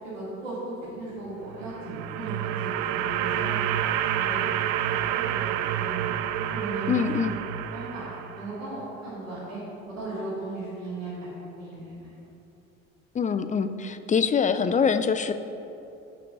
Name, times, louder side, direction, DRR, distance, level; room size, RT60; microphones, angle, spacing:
voice 1, 0.0-4.4 4.8-6.1 6.5-8.0 8.3-9.6 9.9-12.1, right 2 dB, 90° right, -9 dB, 2.0 m, -37 dB
sound 1, 1.5-8.7, right 11 dB, 70° right, 0.5 m, -29 dB
voice 2, 6.9-7.4 13.1-15.3, left 6 dB, 20° left, 10 dB, 0.5 m, -24 dB
6.8 x 5.2 x 6.8 m, 2.9 s
hypercardioid pair, 55°, 37 cm